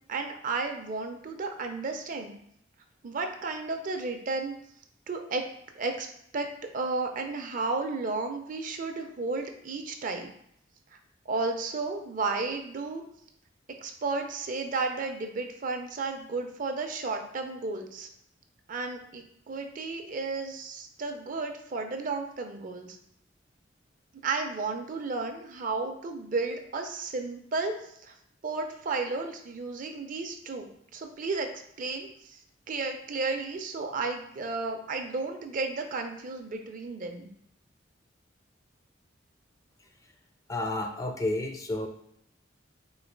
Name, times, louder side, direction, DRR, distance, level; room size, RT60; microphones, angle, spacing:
voice 1, 0.0-2.3 3.0-4.6 5.1-5.5 5.7-6.1 6.3-10.3 11.3-13.0 13.7-18.1 18.7-23.0 24.1-27.8 28.0-28.1 28.4-30.7 30.9-31.5 31.8-32.4 32.7-37.3, right 3 dB, 45° right, 5 dB, 0.5 m, -33 dB
voice 2, 40.5-41.9, left 2 dB, 20° left, 3 dB, 0.4 m, -31 dB
3.9 x 2.4 x 4.5 m, 0.73 s
head